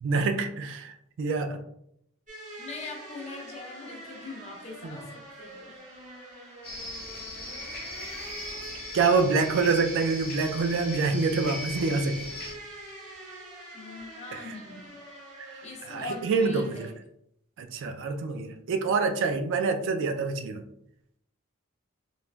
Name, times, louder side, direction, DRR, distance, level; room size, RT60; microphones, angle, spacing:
voice 1, 0.0-1.6 4.8-5.0 8.9-12.1 14.3-14.6 15.4-15.6 15.9-16.9 17.6-20.6, right 4 dB, 60° right, 7 dB, 0.3 m, -26 dB
sound 1, 2.3-16.9, right 1 dB, 35° right, 0.7 m, -45 dB
voice 2, 2.6-5.8 13.7-15.0 15.6-17.0, left 3 dB, 30° left, 1 dB, 0.5 m, -42 dB
sound 2, 6.6-12.5, left 1 dB, 10° left, 1.0 m, -39 dB
3.1 x 2.2 x 2.4 m, 0.74 s
head